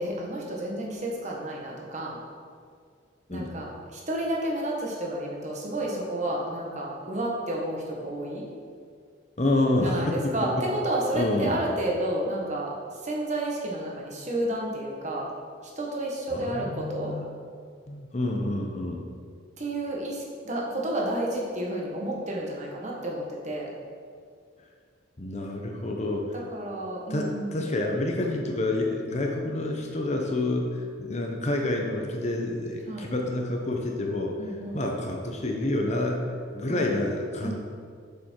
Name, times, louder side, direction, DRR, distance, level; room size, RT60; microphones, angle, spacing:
voice 1, 0.0-2.2 3.3-8.5 9.8-15.3 15.6-17.1 19.6-23.7 26.5-27.7 32.9-33.1 34.4-34.8 36.7-36.9 37.4-37.6, right 1 dB, 35° right, -2 dB, 1.4 m, -31 dB
voice 2, 9.4-10.2 11.1-11.6 16.3-17.2 17.9-19.0 25.2-26.3 27.1-34.4 34.7-37.6, left 2 dB, 35° left, 1 dB, 0.8 m, -28 dB
7.3 x 7.0 x 4.6 m, 2.1 s
head